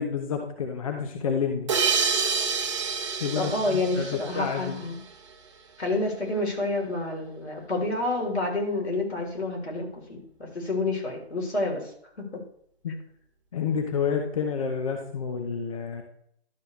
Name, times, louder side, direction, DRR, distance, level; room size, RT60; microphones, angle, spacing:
voice 1, 0.0-1.7 3.2-4.8 12.8-13.0 13.5-16.0, left 6 dB, 35° left, 4 dB, 0.9 m, -29 dB
sound 1, 1.7-5.0, right 5 dB, 30° right, 0.9 m, -28 dB
voice 2, 3.4-5.0 5.8-12.4, left 2 dB, 80° left, -1 dB, 3.5 m, -29 dB
12.0 x 6.5 x 3.1 m, 0.68 s
figure-of-eight pair, 150°, 32 cm